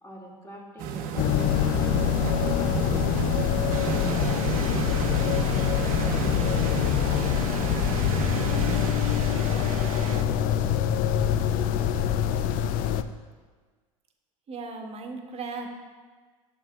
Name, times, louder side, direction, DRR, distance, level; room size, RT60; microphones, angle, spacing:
voice 1, 0.0-1.5 1.8-2.1 2.6-6.5, right 1 dB, 15° left, -3 dB, 2.4 m, -44 dB
sound 1, 0.8-8.9, right 7 dB, 55° right, 0.9 m, -32 dB
sound 2, 1.2-13.0, left 9 dB, 50° left, 0.5 m, -25 dB
sound 3, 3.7-10.2, right 8 dB, 85° right, 0.5 m, -38 dB
voice 2, 14.5-15.7, right 4 dB, 35° right, 3 dB, 1.3 m, -36 dB
11.5 x 7.5 x 2.4 m, 1.4 s
hypercardioid pair, 80°, 18 cm